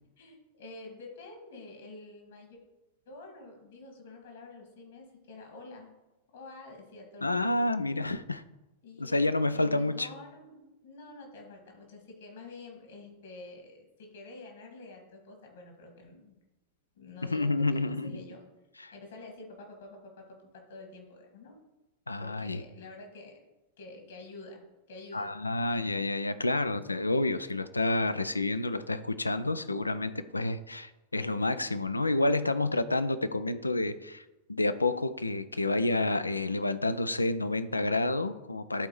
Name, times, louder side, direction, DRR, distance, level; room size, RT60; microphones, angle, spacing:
voice 1, 0.2-2.6 3.1-5.9 6.3-7.5 8.8-16.4 17.0-17.5 17.8-18.4 18.9-21.6 22.2-23.4 23.8-24.6 24.9-25.3, left 3 dB, 60° left, 2 dB, 2.0 m, -48 dB
voice 2, 7.2-8.4 9.0-10.1 17.3-18.2 18.8-18.9 22.1-22.6 25.1-34.2 34.5-38.9, left 2 dB, 80° left, 12 dB, 0.4 m, -29 dB
12.0 x 4.3 x 3.2 m, 1.0 s
figure-of-eight pair, 90°, 0 cm